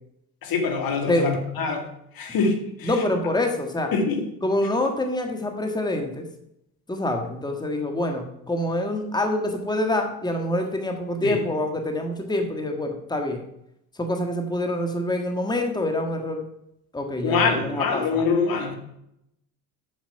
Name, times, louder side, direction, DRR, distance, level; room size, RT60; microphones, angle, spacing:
voice 1, 0.4-1.9 2.2-2.9 3.9-4.3 11.2-11.4 17.2-18.8, left 4 dB, 50° left, 5 dB, 2.0 m, -24 dB
voice 2, 2.8-3.9 4.4-6.2 6.9-13.4 14.0-16.4 16.9-18.3, left 1 dB, 10° left, 4 dB, 1.5 m, -26 dB
7.3 x 6.7 x 5.7 m, 0.79 s
hypercardioid pair, 65°, 44 cm